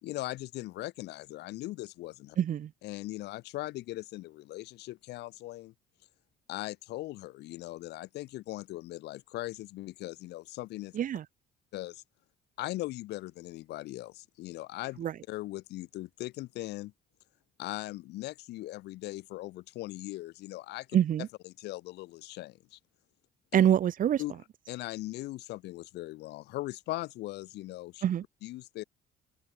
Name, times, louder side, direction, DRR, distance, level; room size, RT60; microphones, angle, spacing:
voice 1, 0.0-2.4 2.8-5.7 6.5-11.0 11.7-12.0 12.6-16.9 17.6-20.9 21.4-22.8 24.2-24.3 24.7-28.0 28.4-28.8, left 17 dB, 80° left, 3.3 m, -39 dB
voice 2, 2.4-2.7 10.9-11.2 15.0-15.1 20.9-21.3 23.5-24.2 28.0-28.2, right 10 dB, 55° right, 2.3 m, -25 dB
cardioid pair, 110°, 17 cm